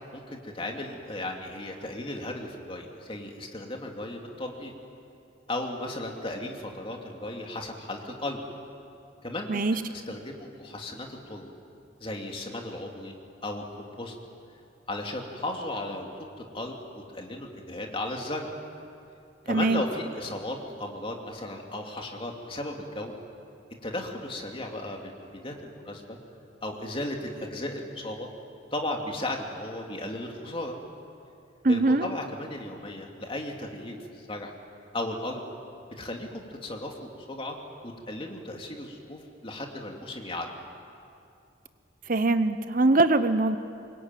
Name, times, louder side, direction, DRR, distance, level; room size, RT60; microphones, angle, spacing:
voice 1, 0.1-4.7 5.5-8.4 9.2-11.5 12.0-13.1 13.4-14.1 14.9-16.1 16.4-18.5 19.4-23.1 23.8-26.2 26.6-28.3 28.7-30.8 31.7-34.5 34.9-35.4 36.0-37.6 37.8-40.5, left 1 dB, 30° left, 1 dB, 2.7 m, -35 dB
voice 2, 9.5-9.8 19.5-19.8 31.6-32.1 42.1-43.6, right 2 dB, 45° right, 11 dB, 0.8 m, -22 dB
25.5 x 22.5 x 9.2 m, 2.6 s
head